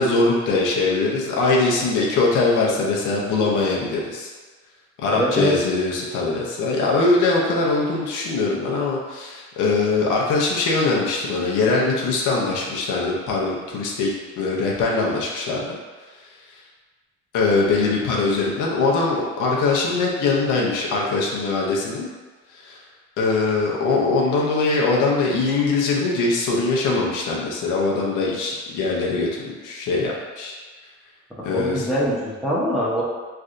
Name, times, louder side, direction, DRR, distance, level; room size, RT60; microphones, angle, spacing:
voice 1, 0.0-4.3 5.0-15.8 17.3-22.1 22.5-22.8 23.2-30.5 31.4-31.9, left 3 dB, 85° left, -3 dB, 0.7 m, -22 dB
voice 2, 5.1-5.6 31.4-33.0, equal, ahead, -8 dB, 0.9 m, -23 dB
3.2 x 2.6 x 2.5 m, 1.3 s
cardioid pair, 90°, 30 cm